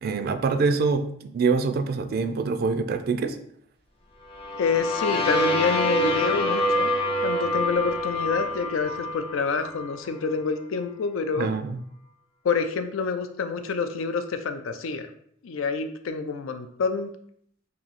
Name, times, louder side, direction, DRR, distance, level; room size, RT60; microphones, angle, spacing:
voice 1, 0.0-3.4 11.4-11.8, right 4 dB, 50° right, 8 dB, 0.3 m, -25 dB
sound 1, 4.3-10.1, left 1 dB, 30° left, 0.5 m, -26 dB
voice 2, 4.6-6.9 7.2-11.5 12.4-15.1 15.4-17.1, left 5 dB, 85° left, 8 dB, 0.4 m, -27 dB
2.9 x 2.7 x 4.0 m, 0.66 s
head